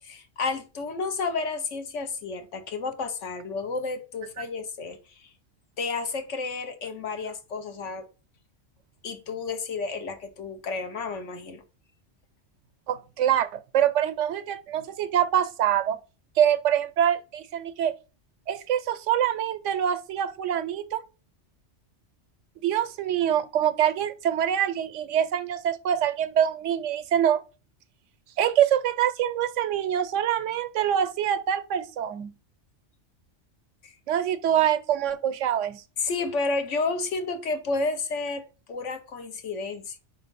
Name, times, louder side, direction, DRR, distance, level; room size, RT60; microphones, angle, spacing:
voice 1, 0.0-5.3 5.8-8.0 9.0-11.6 33.8-33.9 36.0-38.4 38.7-40.0, left 3 dB, 80° left, 1.3 m, -31 dB
voice 2, 12.9-16.0 16.4-17.9 18.5-21.0 22.6-27.4 28.4-32.3 34.1-35.8, right 10 dB, 90° right, 1.0 m, -25 dB
4.8 x 3.7 x 5.2 m
omnidirectional pair, 1.2 m